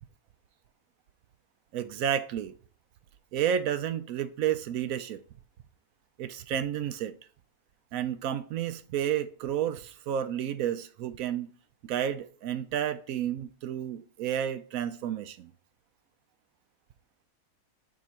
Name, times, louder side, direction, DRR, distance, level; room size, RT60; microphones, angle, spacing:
voice 1, 1.7-2.5 3.3-5.2 6.2-7.1 7.9-11.5 11.8-15.5, right 9 dB, 70° right, 1.0 m, -31 dB
7.6 x 3.8 x 4.4 m
omnidirectional pair, 1.6 m